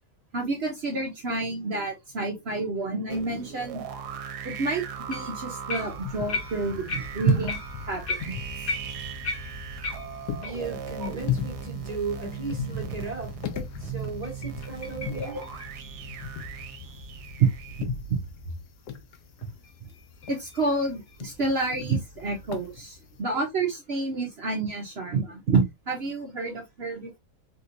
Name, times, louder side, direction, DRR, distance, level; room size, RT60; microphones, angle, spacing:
voice 1, 0.3-3.8 4.4-7.6 7.9-8.4 11.0-11.1 15.1-15.4 17.4-17.5 17.7-18.2 20.3-27.2, right 4 dB, 55° right, 0.8 m, -28 dB
sound 1, 3.1-17.8, right 8 dB, 80° right, 1.2 m, -39 dB
sound 2, 5.1-5.4 5.7-10.6 11.0-11.1 11.6-11.7 12.2-12.3 14.0-16.8 19.6-21.2, left 3 dB, 55° left, 1.2 m, -37 dB
sound 3, 5.8-23.2, left 7 dB, 80° left, 1.2 m, -37 dB
voice 2, 10.4-13.4 13.8-15.4, right 4 dB, 25° right, 1.2 m, -35 dB
3.5 x 2.7 x 2.5 m
omnidirectional pair, 1.7 m